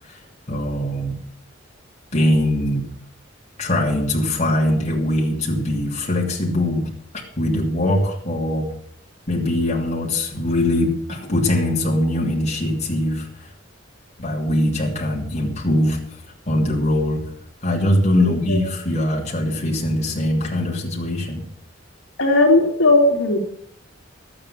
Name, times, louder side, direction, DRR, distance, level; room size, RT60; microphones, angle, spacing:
voice 1, 0.5-1.2 2.1-2.8 3.6-6.9 7.4-8.7 9.3-13.3 14.2-16.0 16.5-17.2 17.6-21.4, left 1 dB, 35° left, -2 dB, 2.9 m, -21 dB
voice 2, 18.2-18.6 22.2-23.4, left 2 dB, 75° left, 0 dB, 2.7 m, -17 dB
12.5 x 8.8 x 7.4 m, 0.67 s
head